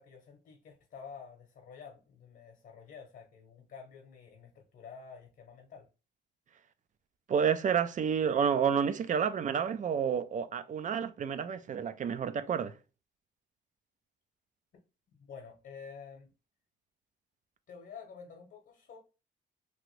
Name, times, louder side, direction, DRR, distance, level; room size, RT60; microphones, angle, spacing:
voice 1, 0.0-5.9 15.3-16.3 17.7-19.0, left 6 dB, 55° left, 0.8 m, -49 dB
voice 2, 7.3-12.7, right 7 dB, 40° right, 0.4 m, -30 dB
2.9 x 2.5 x 3.1 m
cardioid pair, 90°, 20 cm